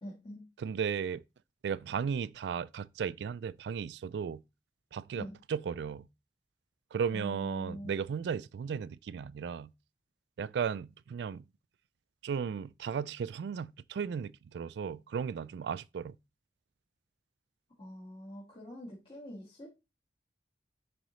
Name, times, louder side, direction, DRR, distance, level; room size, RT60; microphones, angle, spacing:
voice 1, 0.0-0.4 5.1-5.4 7.1-7.9 17.8-19.7, equal, 30° left, 1.7 m, -44 dB
voice 2, 0.6-1.2 1.6-4.4 4.9-6.1 6.9-9.7 10.4-11.4 12.2-16.2, right 6 dB, 75° right, 0.3 m, -35 dB
10.0 x 3.9 x 3.1 m
head